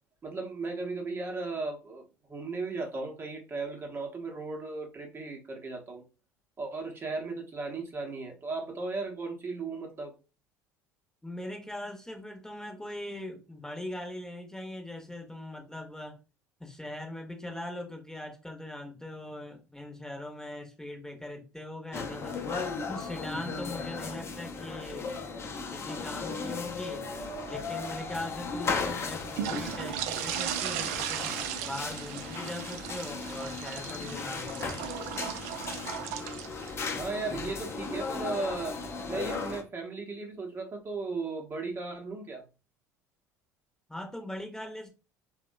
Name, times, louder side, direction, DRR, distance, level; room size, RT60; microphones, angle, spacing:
voice 1, 0.2-2.0 2.3-6.0 6.6-10.1 37.0-38.8 39.1-42.4, right 3 dB, 25° right, 0.8 m, -36 dB
voice 2, 11.2-16.2 16.6-22.4 22.9-27.1 27.4-34.7 43.9-44.9, left 1 dB, 5° left, 0.9 m, -40 dB
sound 1, 21.9-39.6, left 4 dB, 30° left, 0.6 m, -36 dB
sound 2, 27.2-39.5, right 10 dB, 65° right, 0.4 m, -38 dB
3.4 x 2.2 x 2.5 m
figure-of-eight pair, 65°, 9 cm